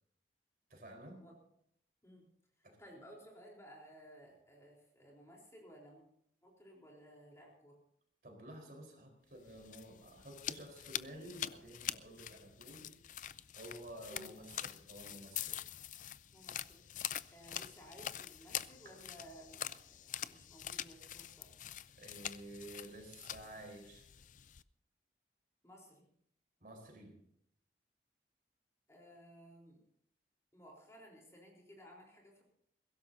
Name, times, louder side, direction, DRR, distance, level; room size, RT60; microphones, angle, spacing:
voice 1, 0.7-1.2 2.6-2.8 8.2-13.0 13.5-15.6 18.8-19.0 22.0-24.1 26.6-27.2, right 1 dB, 50° right, 3 dB, 4.3 m, -52 dB
voice 2, 2.6-6.0 6.4-7.8 14.1-14.3 16.3-17.0 17.3-21.5 25.6-26.1 28.9-29.8 30.5-32.4, equal, 15° left, -2 dB, 3.8 m, -57 dB
sound 1, 9.4-24.6, left 11 dB, 45° left, 0.4 m, -45 dB
22.0 x 16.5 x 2.7 m, 0.69 s
head